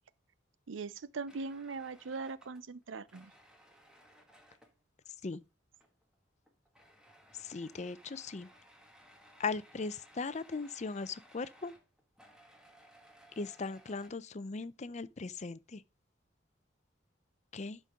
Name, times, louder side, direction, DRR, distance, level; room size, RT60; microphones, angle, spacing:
voice 1, 0.7-3.3, right 4 dB, 85° right, 0.6 m, -40 dB
sound 1, 1.3-4.8 5.7-6.2 6.5-14.1, equal, 5° right, 1.6 m, -61 dB
voice 2, 7.4-8.5 9.4-11.7 13.4-15.8 17.5-17.8, left 4 dB, 35° left, 0.5 m, -38 dB
12.0 x 5.3 x 3.6 m
head